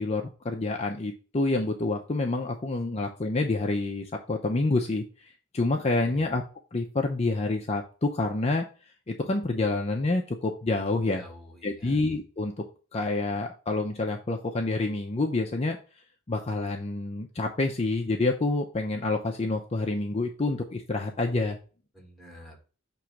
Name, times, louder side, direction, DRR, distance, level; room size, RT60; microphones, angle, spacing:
voice 1, 0.0-6.4 6.7-8.6 9.1-11.2 11.6-12.5 12.9-15.8 16.3-21.6, left 2 dB, 30° left, 2 dB, 0.6 m, -28 dB
voice 2, 11.1-12.0 21.9-22.6, left 1 dB, ahead, 0 dB, 1.5 m, -47 dB
6.2 x 3.1 x 5.8 m, 0.37 s
head